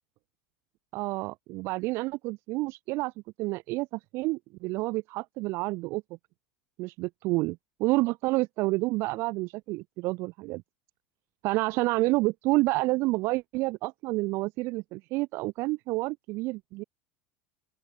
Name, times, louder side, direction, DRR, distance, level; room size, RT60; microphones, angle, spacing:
voice 1, 0.9-3.1 3.4-6.0 6.8-7.5 7.8-10.6 11.4-16.8, right 22 dB, 50° right, 1.2 m, -29 dB
open air
figure-of-eight pair, 75°, 6 cm